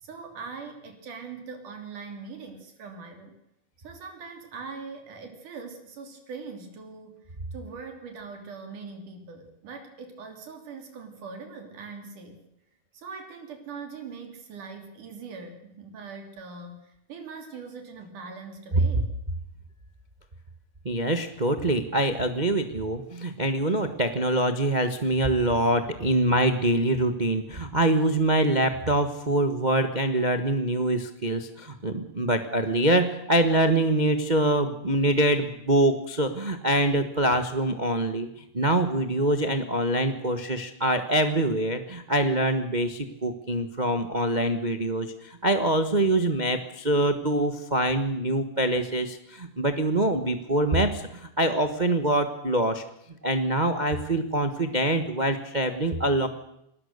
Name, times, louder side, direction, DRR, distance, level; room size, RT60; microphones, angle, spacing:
voice 1, 0.0-3.4 3.8-12.4 12.9-19.1, right 5 dB, 85° right, 4 dB, 4.5 m, -41 dB
voice 2, 20.8-38.3 38.5-52.8 53.2-56.3, right 1 dB, 70° right, 7 dB, 0.4 m, -24 dB
27.5 x 20.0 x 6.8 m, 0.80 s
omnidirectional pair, 3.5 m